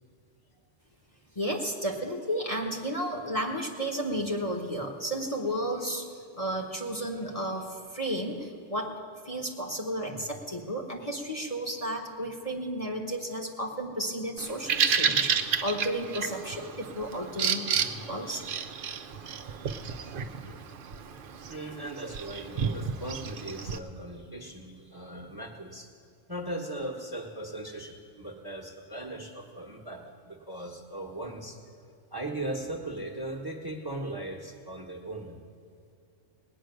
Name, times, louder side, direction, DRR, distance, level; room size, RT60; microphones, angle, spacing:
voice 1, 1.3-18.4, equal, 30° left, 0 dB, 1.2 m, -33 dB
Bird vocalization bird call bird song, 14.4-23.8, right 6 dB, 55° right, 0.7 m, -31 dB
voice 2, 21.5-25.9 26.3-31.6 32.1-35.4, right 1 dB, 20° right, 2 dB, 1.2 m, -38 dB
19.0 x 6.3 x 9.2 m, 2.3 s
omnidirectional pair, 1.3 m